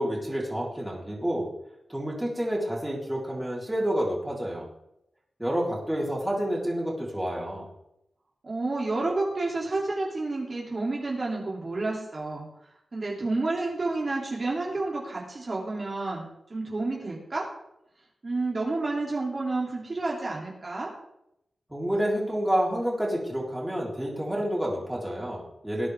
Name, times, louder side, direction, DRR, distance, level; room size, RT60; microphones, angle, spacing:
voice 1, 0.0-1.5 1.9-4.7 5.4-7.7 21.7-25.9, equal, 10° right, -4 dB, 3.8 m, -29 dB
voice 2, 8.4-12.5 12.9-17.5 18.2-20.9, right 2 dB, 45° right, -3 dB, 2.8 m, -30 dB
19.0 x 10.0 x 3.5 m, 0.82 s
wide cardioid pair, 80°, 0 cm